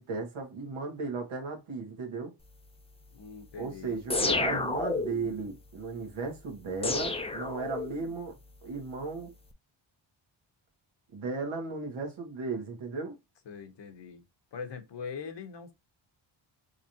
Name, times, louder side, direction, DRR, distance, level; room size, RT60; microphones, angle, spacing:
voice 1, 0.0-2.3 3.6-8.4 8.6-9.3 11.1-13.2, right 4 dB, 75° right, 1.7 m, -35 dB
voice 2, 3.1-4.0 13.5-14.2 14.5-15.7, left 6 dB, 55° left, 0.9 m, -42 dB
sound 1, 4.1-5.3 6.8-8.1, left 3 dB, 10° left, 0.5 m, -30 dB
3.8 x 3.2 x 2.7 m
cardioid pair, 95°, 49 cm